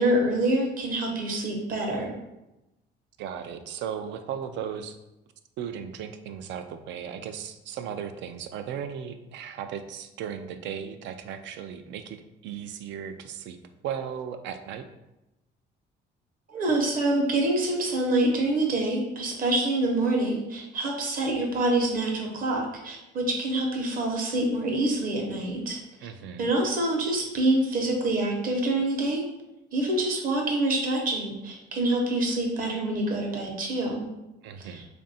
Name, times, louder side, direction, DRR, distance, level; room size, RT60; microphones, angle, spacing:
voice 1, 0.0-2.2 16.5-25.8 26.4-29.2 29.7-34.1 34.6-34.8, right 2 dB, 50° right, 1 dB, 0.9 m, -26 dB
voice 2, 3.2-5.0 5.6-13.6 13.8-14.8 26.0-26.5 34.4-34.9, right 8 dB, 75° right, 9 dB, 0.4 m, -36 dB
3.4 x 2.5 x 4.0 m, 0.95 s
cardioid pair, 140°, 19 cm